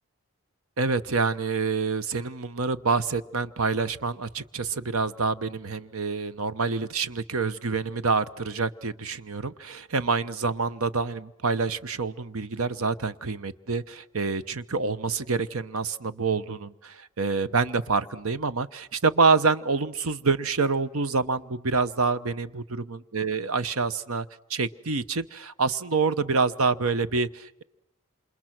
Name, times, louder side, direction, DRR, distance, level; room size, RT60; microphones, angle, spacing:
voice 1, 0.8-27.6, right 4 dB, 70° right, 14 dB, 1.0 m, -27 dB
28.5 x 27.5 x 6.1 m, 0.84 s
head